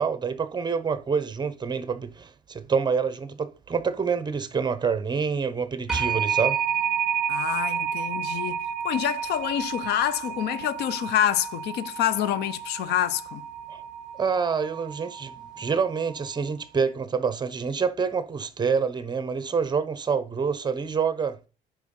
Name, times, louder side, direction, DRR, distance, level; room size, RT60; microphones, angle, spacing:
voice 1, 0.0-6.6 13.7-13.8 14.2-21.4, right 6 dB, 25° right, 1.0 m, -27 dB
sound 1, 5.9-16.5, right 8 dB, 5° right, 2.4 m, -31 dB
voice 2, 7.3-13.4, left 11 dB, 80° left, 0.7 m, -27 dB
9.3 x 5.4 x 5.5 m
cardioid pair, 110°, 17 cm